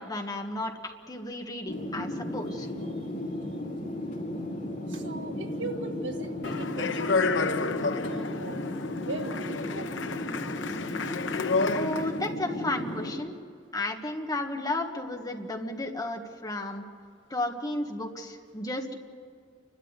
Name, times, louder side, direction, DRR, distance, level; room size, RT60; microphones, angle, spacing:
voice 1, 0.0-2.7 11.7-13.3 13.7-16.8 17.3-19.0, left 1 dB, 20° left, 3 dB, 1.7 m, -33 dB
sound 1, 1.7-13.1, left 1 dB, 40° left, 3.7 m, -35 dB
voice 2, 4.9-8.6 9.1-9.9, right 1 dB, 80° right, 4 dB, 1.9 m, -39 dB
Speech, 6.4-12.3, left 4 dB, 85° left, 0.8 m, -30 dB
29.0 x 12.5 x 8.2 m, 2.2 s
head